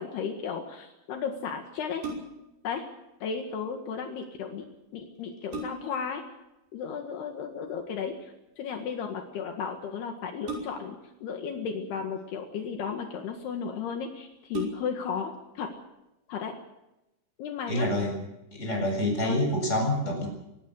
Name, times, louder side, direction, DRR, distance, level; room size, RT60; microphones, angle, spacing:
voice 1, 0.0-2.0 2.6-2.8 3.2-4.7 4.9-6.2 6.7-15.7 16.3-16.5 17.4-17.9 19.2-19.4, left 6 dB, 70° left, 3 dB, 3.7 m, -34 dB
sound 1, 1.8-2.6 4.6-4.7 5.2-6.1 7.6-8.0 10.5-11.1 12.0-12.7 13.5-13.6 13.9-14.0 14.5-15.1 15.6-15.7, right 3 dB, 70° right, 7.5 m, -38 dB
voice 2, 17.7-18.2 18.5-20.3, left 1 dB, 15° left, 1 dB, 7.5 m, -27 dB
24.5 x 19.0 x 6.4 m, 0.93 s
omnidirectional pair, 4.9 m